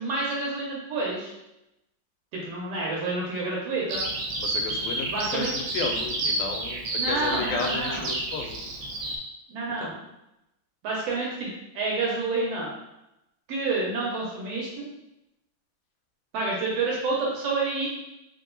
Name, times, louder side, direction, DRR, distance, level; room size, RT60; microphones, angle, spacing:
voice 1, 0.0-1.3 2.3-4.1 5.1-5.5 6.9-8.1 9.5-9.9 10.8-11.5 11.7-12.7 13.5-14.9 16.3-17.9, right 3 dB, 70° right, -4 dB, 1.7 m, -28 dB
Bird vocalization bird call bird song, 3.9-9.2, right 2 dB, 85° right, 1.2 m, -30 dB
voice 2, 4.4-8.6 9.8-9.9, left 4 dB, 85° left, 4 dB, 2.0 m, -33 dB
4.6 x 2.7 x 3.8 m, 0.90 s
omnidirectional pair, 3.4 m